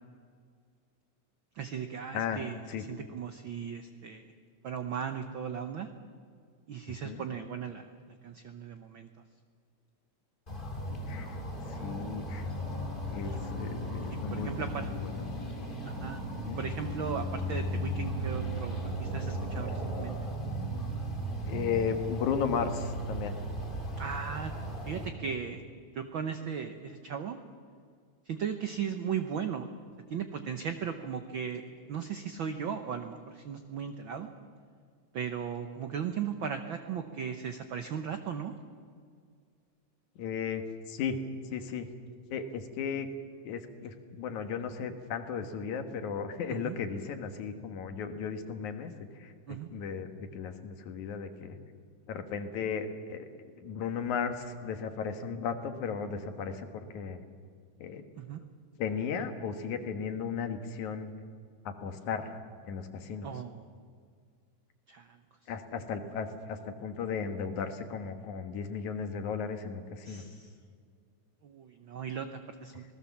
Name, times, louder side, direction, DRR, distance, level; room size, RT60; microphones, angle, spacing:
voice 1, 1.5-4.2 4.6-5.9 6.7-7.9 8.2-9.1 13.2-13.4 14.1-14.9 15.8-16.2 16.6-20.2 24.0-24.5 24.8-25.6 25.9-27.4 28.2-29.7 30.1-31.6 31.9-34.3 35.1-38.5 46.5-46.7 49.5-49.7 58.2-58.4 63.2-63.7 64.9-65.2 70.0-70.5 71.4-72.8, right 7 dB, 80° right, 7 dB, 1.1 m, -37 dB
sound 1, 10.5-25.1, equal, 15° left, 2.7 m, -36 dB
voice 2, 11.1-11.4 11.7-15.2 16.4-16.6 21.5-23.3 40.2-41.2 41.5-41.9 42.3-43.1 43.4-48.9 49.2-51.6 52.1-53.3 53.6-57.2 57.8-58.0 58.8-61.1 61.6-62.4 62.7-63.3 65.5-70.2, left 6 dB, 70° left, 7 dB, 2.8 m, -35 dB
26.5 x 19.0 x 7.2 m, 2.1 s
omnidirectional pair, 3.6 m